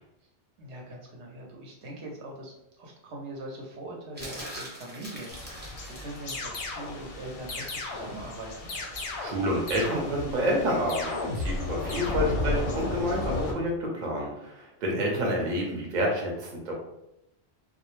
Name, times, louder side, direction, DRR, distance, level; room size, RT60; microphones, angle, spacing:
voice 1, 0.6-8.7 14.9-15.2, right 1 dB, 85° right, -1 dB, 0.9 m, -42 dB
sound 1, 4.2-6.2 8.7-8.9, equal, 10° right, 0.6 m, -42 dB
Thunder / Rain, 5.3-13.5, left 2 dB, 60° left, 0.6 m, -36 dB
sound 2, 6.3-7.0 7.5-8.2 8.7-9.4 9.7-10.3 10.9-11.6 11.9-12.6, left 3 dB, 85° left, 0.9 m, -34 dB
voice 2, 9.2-16.7, equal, 50° right, -1 dB, 0.7 m, -29 dB
2.3 x 2.0 x 3.0 m, 0.84 s
omnidirectional pair, 1.1 m